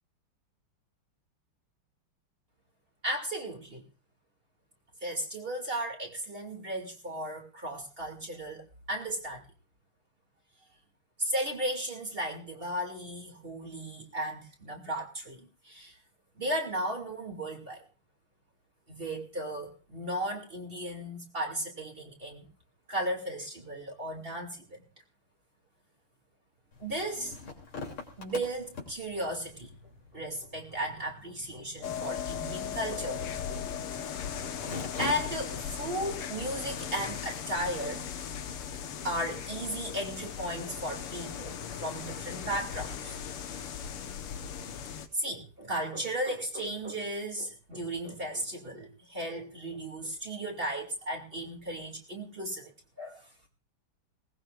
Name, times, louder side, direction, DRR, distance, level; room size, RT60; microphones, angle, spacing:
voice 1, 3.0-3.8 5.0-9.5 11.2-16.0 16.4-17.8 18.9-22.5 22.9-24.8 26.8-27.4 28.2-29.7 30.1-33.7 34.4-38.1 39.0-43.2 43.8-44.1 45.1-53.3, right 1 dB, 25° right, 2 dB, 2.5 m, -35 dB
sound 1, 26.7-37.9, left 4 dB, 70° left, 3.9 m, -46 dB
sound 2, 31.8-45.1, left 8 dB, 85° left, 2.1 m, -38 dB
21.0 x 18.5 x 2.5 m, 0.34 s
omnidirectional pair, 2.4 m